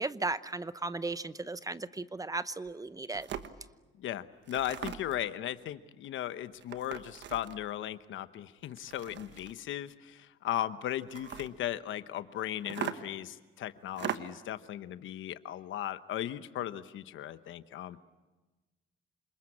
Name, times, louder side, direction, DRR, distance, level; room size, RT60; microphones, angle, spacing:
voice 1, 0.0-3.3, right 3 dB, 15° right, 15 dB, 0.8 m, -36 dB
sound 1, 2.7-2.8 3.1-3.5 4.4-5.2 6.6-7.6 8.7-9.6 11.0-11.5 12.7-13.2 13.9-14.5, right 9 dB, 65° right, 1.3 m, -40 dB
voice 2, 4.0-18.0, left 12 dB, 75° left, 13 dB, 1.0 m, -37 dB
28.0 x 20.5 x 8.6 m, 1.2 s
cardioid pair, 90°, 20 cm